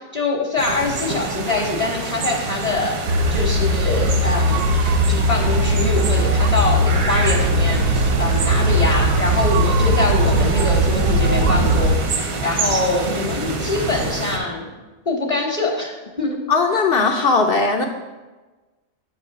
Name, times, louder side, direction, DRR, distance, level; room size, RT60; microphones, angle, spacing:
voice 1, 0.1-3.0 3.3-4.7 5.1-14.7 15.1-15.9 16.2-16.3, left 2 dB, 35° left, -4 dB, 0.9 m, -24 dB
sound 1, 0.6-14.4, right 3 dB, 90° right, 1.3 m, -27 dB
sound 2, 3.1-12.0, equal, 70° right, 0.8 m, -19 dB
sound 3, 4.5-14.1, equal, 20° right, 0.6 m, -35 dB
voice 2, 16.5-17.9, left 4 dB, 60° left, 3 dB, 0.6 m, -18 dB
8.9 x 3.0 x 5.7 m, 1.2 s
omnidirectional pair, 1.4 m